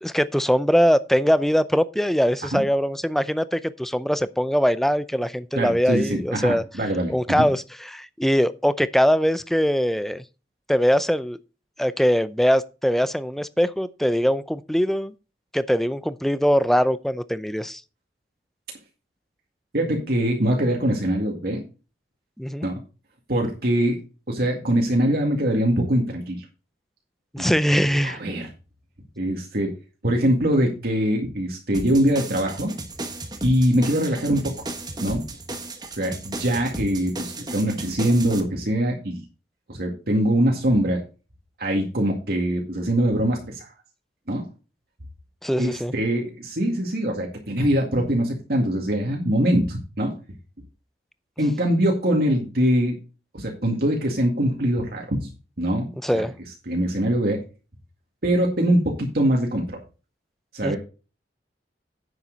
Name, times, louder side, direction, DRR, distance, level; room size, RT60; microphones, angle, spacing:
voice 1, 0.0-6.6 7.1-10.2 10.7-11.4 11.8-15.1 15.5-17.8 22.4-22.7 27.3-28.2 45.4-45.9 56.0-56.3 60.6-60.8, equal, ahead, 0.4 m, -22 dB
voice 2, 5.5-7.5 19.7-21.6 22.6-22.8 23.3-24.0 24.3-26.4 27.4-27.5 28.0-28.5 29.2-29.7 30.0-32.7 33.4-34.7 35.0-35.2 36.0-39.2 39.7-41.0 41.6-43.7 44.3-44.4 45.6-50.2 51.4-53.0 53.3-55.3 55.6-56.3 56.7-57.4 58.2-59.8 60.5-60.8, right 1 dB, 60° right, 2.1 m, -23 dB
sound 1, 31.7-38.4, right 2 dB, 25° right, 1.3 m, -35 dB
9.8 x 7.4 x 4.0 m
head